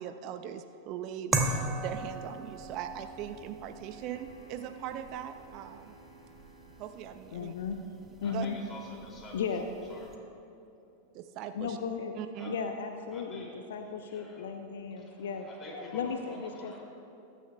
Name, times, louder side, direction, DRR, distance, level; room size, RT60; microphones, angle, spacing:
voice 1, 0.0-5.9 6.8-7.5 8.3-8.5 9.2-9.3 11.1-11.8 12.1-12.6, right 10 dB, 40° right, 9 dB, 0.4 m, -40 dB
sound 1, 1.3-10.2, right 2 dB, 10° right, 1.1 m, -39 dB
sound 2, 3.8-7.2, right 2 dB, 80° left, 2.4 m, -57 dB
voice 2, 7.3-7.8 8.2-8.6 9.3-9.6 11.5-12.1 12.5-15.5 15.9-16.8, left 6 dB, 60° left, 6 dB, 0.6 m, -35 dB
voice 3, 8.2-9.6 9.9-10.1 12.4-12.5 13.1-13.5 14.0-14.5 15.0-16.8, left 2 dB, 20° left, -2 dB, 2.7 m, -47 dB
21.0 x 9.7 x 2.3 m, 2.8 s
figure-of-eight pair, 90°, 0 cm